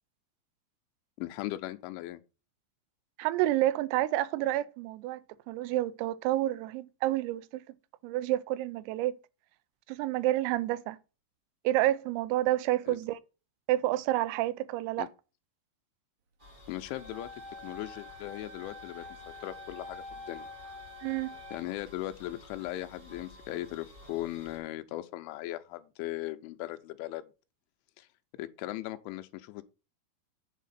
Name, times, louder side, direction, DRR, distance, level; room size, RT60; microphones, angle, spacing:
voice 1, 1.2-2.2 12.9-13.0 15.0-15.1 16.7-17.3 17.6-20.5 21.5-27.2 28.0-28.1 28.4-29.6, left 15 dB, 85° left, 2.9 m, -38 dB
voice 2, 3.2-5.2 5.5-7.8 8.0-9.2 9.9-11.0 11.6-13.2 13.7-15.1 21.0-21.3, right 15 dB, 90° right, 3.3 m, -29 dB
sound 1, 16.4-24.6, left 1 dB, 30° right, 0.9 m, -53 dB
sound 2, 16.9-21.9, left 2 dB, 60° right, 2.6 m, -46 dB
8.2 x 7.3 x 4.2 m
omnidirectional pair, 5.9 m